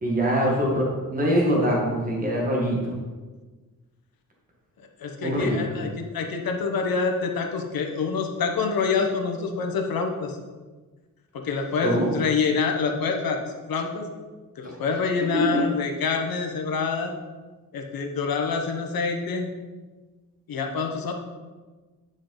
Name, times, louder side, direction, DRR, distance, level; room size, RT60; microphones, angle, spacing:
voice 1, 0.0-2.9 5.2-5.6 11.8-12.1 14.6-14.7 15.5-15.6, equal, 25° right, -2 dB, 1.5 m, -23 dB
voice 2, 5.0-10.4 11.3-13.4 13.7-14.1 14.6-17.1 17.7-19.5 20.5-21.1, left 5 dB, 85° left, 3 dB, 1.2 m, -26 dB
9.6 x 5.3 x 3.9 m, 1.3 s
wide cardioid pair, 175°, 34 cm